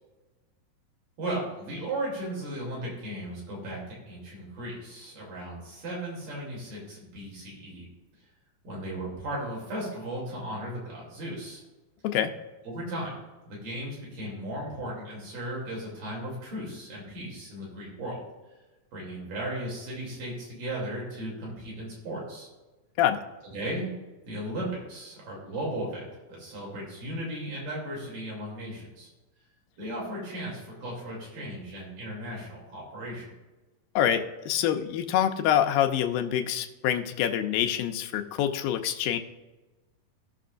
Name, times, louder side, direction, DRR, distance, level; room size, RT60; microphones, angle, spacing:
voice 1, 1.2-7.9 8.6-11.6 12.6-13.2 13.5-18.2 18.9-22.5 23.5-23.9 24.3-29.1 29.8-33.3, right 1 dB, 65° right, -4 dB, 4.5 m, -36 dB
voice 2, 34.0-39.2, left 10 dB, 80° left, 5 dB, 2.4 m, -26 dB
17.0 x 6.2 x 2.5 m, 1.1 s
omnidirectional pair, 4.2 m